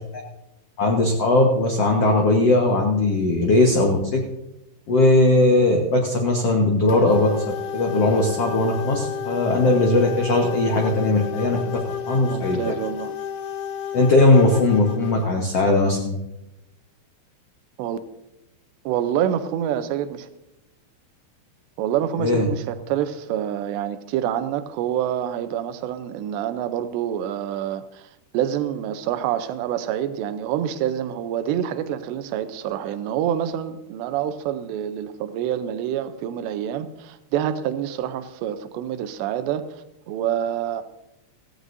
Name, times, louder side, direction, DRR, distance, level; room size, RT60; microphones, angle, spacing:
voice 1, 0.8-4.2 4.9-7.3 7.7-11.8 12.1-12.7 13.9-16.2 22.2-22.5, left 2 dB, 70° left, 1 dB, 1.5 m, -19 dB
sound 1, 6.9-15.3, left 8 dB, 90° left, 3.3 m, -31 dB
voice 2, 12.3-13.2 17.8-18.0 18.9-20.3 21.8-40.8, right 10 dB, 85° right, 11 dB, 3.0 m, -27 dB
16.0 x 16.0 x 2.7 m, 0.90 s
omnidirectional pair, 4.9 m